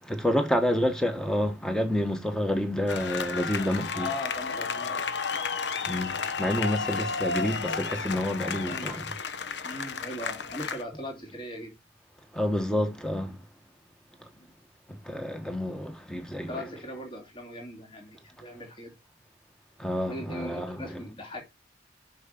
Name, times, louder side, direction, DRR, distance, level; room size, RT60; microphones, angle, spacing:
voice 1, 0.0-4.1 5.8-9.1 12.3-13.4 14.2-14.3 14.9-16.6 19.8-21.0, left 1 dB, 5° left, 1.3 m, -29 dB
sound 1, 2.9-10.8, left 5 dB, 65° left, 0.9 m, -32 dB
voice 2, 3.9-5.1 8.7-9.0 9.6-11.7 14.3-14.5 16.5-18.9 20.1-21.4, left 1 dB, 30° left, 2.8 m, -39 dB
6.3 x 6.0 x 6.7 m
head